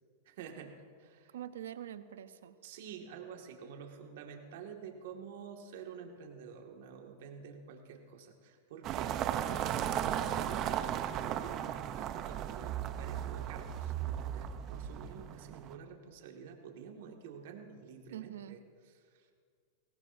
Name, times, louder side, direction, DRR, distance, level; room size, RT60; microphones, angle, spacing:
voice 1, 0.3-1.4 2.6-11.0 11.2-11.7 12.0-18.6 19.0-19.3, right 7 dB, 70° right, 2 dB, 2.0 m, -49 dB
voice 2, 1.3-2.6 18.1-18.6, right 11 dB, 85° right, 12 dB, 0.7 m, -44 dB
sound 1, 8.8-15.7, right 10 dB, 35° right, 0.7 m, -36 dB
21.5 x 17.0 x 2.7 m, 2.1 s
supercardioid pair, 135°, 0 cm